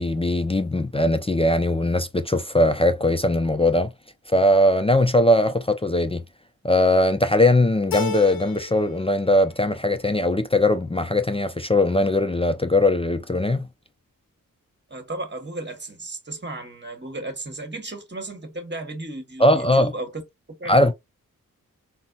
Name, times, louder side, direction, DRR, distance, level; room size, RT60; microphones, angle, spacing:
voice 1, 0.0-3.9 4.3-6.2 6.6-13.7 19.4-19.9 20.7-20.9, left 1 dB, 15° left, 0.3 m, -20 dB
Keyboard (musical), 7.9-9.0 9.3-10.1, left 5 dB, 80° left, 0.5 m, -32 dB
voice 2, 14.9-20.1 20.6-20.9, right 2 dB, 30° right, 1.1 m, -34 dB
4.0 x 2.0 x 2.3 m
cardioid pair, 50°, 35 cm